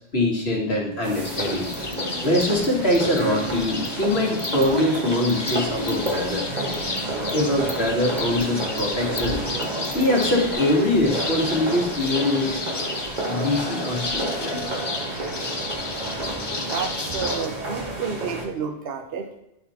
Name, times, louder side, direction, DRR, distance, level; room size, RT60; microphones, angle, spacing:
voice 1, 0.1-1.7 2.2-6.5 7.3-9.4 9.9-12.6 13.2-14.6 17.8-18.0, left 1 dB, 70° left, -1 dB, 1.9 m, -23 dB
sound 1, 1.0-18.4, right 1 dB, 40° right, 1.5 m, -31 dB
sound 2, 1.3-17.5, left 3 dB, 30° left, 0.6 m, -32 dB
sound 3, 1.6-4.8 5.2-7.8 8.1-10.5, right 1 dB, 15° right, 0.6 m, -41 dB
voice 2, 16.7-19.3, right 6 dB, 65° right, 5 dB, 1.0 m, -30 dB
11.0 x 4.2 x 4.2 m, 0.88 s
omnidirectional pair, 1.1 m